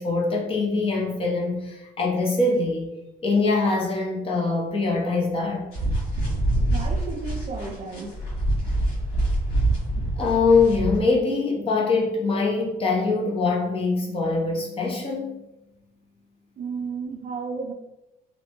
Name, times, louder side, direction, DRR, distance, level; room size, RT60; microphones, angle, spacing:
voice 1, 0.0-2.9 3.2-5.7 10.2-15.5, left 3 dB, 35° left, -1 dB, 0.7 m, -23 dB
sound 1, 5.7-11.0, right 1 dB, 80° left, 1.5 m, -25 dB
voice 2, 6.7-8.1 16.6-17.7, right 4 dB, 45° right, 3 dB, 0.4 m, -33 dB
2.9 x 2.1 x 2.9 m, 0.92 s
cardioid pair, 110°, 17 cm